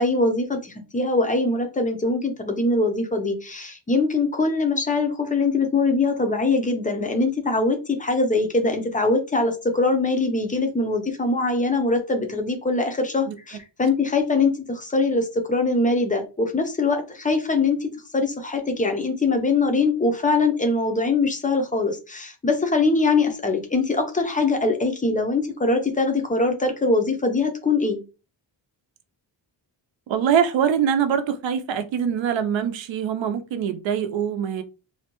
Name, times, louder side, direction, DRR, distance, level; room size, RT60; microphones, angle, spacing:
voice 1, 0.0-28.0, left 3 dB, 20° left, 0.4 m, -22 dB
voice 2, 30.1-34.6, right 8 dB, 80° right, 0.6 m, -23 dB
2.6 x 2.1 x 2.9 m
wide cardioid pair, 140°, 45 cm